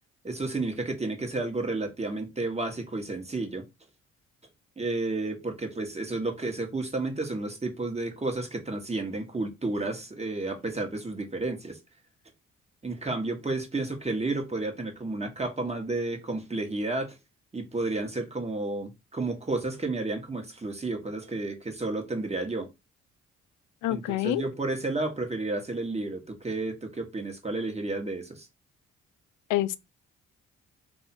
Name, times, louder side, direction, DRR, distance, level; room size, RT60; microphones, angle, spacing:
voice 1, 0.2-3.6 4.8-11.8 12.8-17.2 17.5-22.7 23.9-28.5, right 2 dB, 20° right, 1.4 m, -31 dB
voice 2, 23.8-24.4 29.5-29.8, left 15 dB, 75° left, 0.5 m, -26 dB
3.4 x 2.8 x 4.4 m
supercardioid pair, 55°, 31 cm